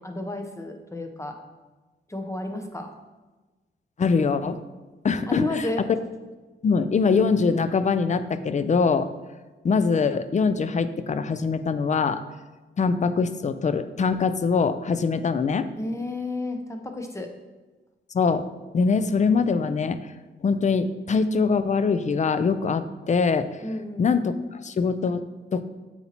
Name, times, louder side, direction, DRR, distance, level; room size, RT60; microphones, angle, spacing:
voice 1, 0.0-1.4 2.1-2.9 5.3-5.8 15.8-17.3 23.6-24.1, left 2 dB, 15° left, 5 dB, 0.7 m, -31 dB
voice 2, 4.0-4.6 5.0-5.4 6.6-9.1 9.6-12.2 12.8-15.7 18.1-18.4 18.7-20.0 20.4-23.5 24.0-25.2 25.5-25.6, left 5 dB, 35° left, 12 dB, 0.4 m, -23 dB
7.7 x 4.3 x 2.9 m, 1.2 s
cardioid pair, 80°, 20 cm